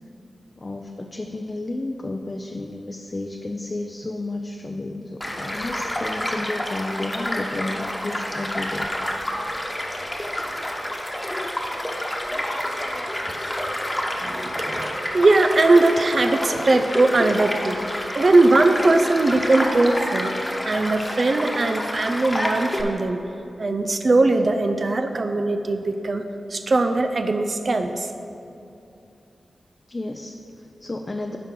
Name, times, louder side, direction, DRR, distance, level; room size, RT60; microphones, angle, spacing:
voice 1, 0.6-8.9 29.9-31.4, left 2 dB, 40° left, 3 dB, 0.5 m, -32 dB
Child speech kid speaking / Stream / Car passing by, 5.2-22.8, left 1 dB, 20° left, 1.1 m, -28 dB
voice 2, 14.2-23.2 23.6-26.2 26.5-28.1, right 2 dB, 55° right, 7 dB, 0.4 m, -20 dB
11.5 x 4.4 x 3.8 m, 2.7 s
cardioid pair, 40°, 0 cm